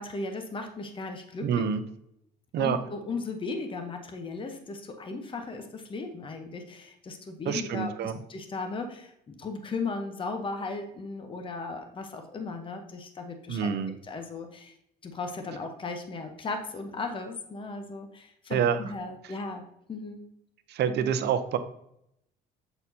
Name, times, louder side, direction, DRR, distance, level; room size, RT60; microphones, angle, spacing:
voice 1, 0.0-1.7 2.6-13.7 14.0-14.7 15.0-20.2, left 3 dB, 25° left, 5 dB, 0.9 m, -36 dB
voice 2, 1.4-1.8 2.5-2.8 7.4-8.1 13.5-13.9 18.5-18.9 19.2-19.3 20.7-21.6, right 7 dB, 60° right, 10 dB, 0.7 m, -27 dB
7.9 x 4.3 x 2.8 m, 0.75 s
cardioid pair, 115°, 19 cm